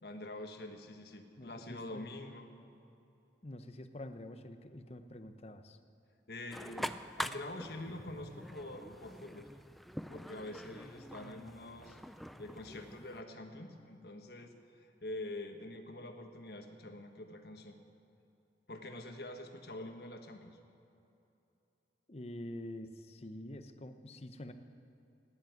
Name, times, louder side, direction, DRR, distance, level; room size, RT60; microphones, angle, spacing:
voice 1, 0.0-2.5 6.3-9.5 10.1-12.0 12.4-17.8 18.7-20.6, left 1 dB, 60° left, 5 dB, 1.4 m, -46 dB
voice 2, 1.4-2.1 3.4-5.8 22.1-24.5, left 1 dB, 35° left, 8 dB, 0.8 m, -46 dB
sound 1, 6.5-13.2, equal, ahead, 0.3 m, -45 dB
14.5 x 10.5 x 9.2 m, 2.8 s
head